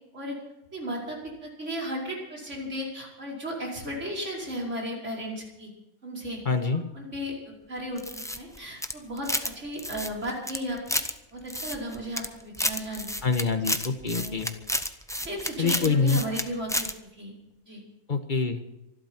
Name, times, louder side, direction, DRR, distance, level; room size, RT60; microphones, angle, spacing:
voice 1, 0.7-5.7 6.0-6.4 6.7-11.0 11.3-13.3 14.1-14.5 15.2-17.3 17.7-17.8, equal, 45° right, -3 dB, 5.5 m, -35 dB
voice 2, 6.4-6.8 13.2-14.5 15.6-16.2 18.1-18.6, left 4 dB, 30° left, 7 dB, 1.5 m, -25 dB
sound 1, 8.0-9.5 9.8-11.1 11.5-12.3 12.5-16.4 16.7-16.9, equal, 5° left, 0.6 m, -30 dB
25.5 x 12.0 x 4.6 m, 0.92 s
omnidirectional pair, 1.7 m